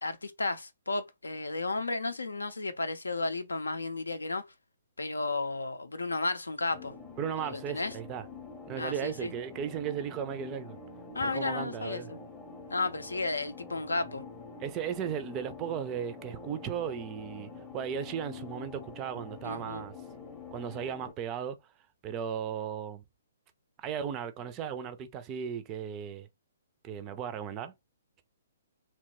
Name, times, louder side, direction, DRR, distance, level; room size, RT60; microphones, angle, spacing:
voice 1, 0.0-4.4 5.0-6.9 7.4-7.9 8.8-9.3 11.1-12.2 12.7-14.2 19.4-19.8, left 3 dB, 75° left, 0.5 m, -33 dB
sound 1, 6.7-21.1, left 4 dB, 10° left, 0.7 m, -46 dB
voice 2, 7.2-8.3 8.7-10.8 11.2-12.1 14.6-19.9 20.5-21.6 22.0-23.0 23.8-26.3 26.8-27.7, right 8 dB, 25° right, 0.4 m, -36 dB
2.9 x 2.1 x 2.9 m
figure-of-eight pair, 125°, 0 cm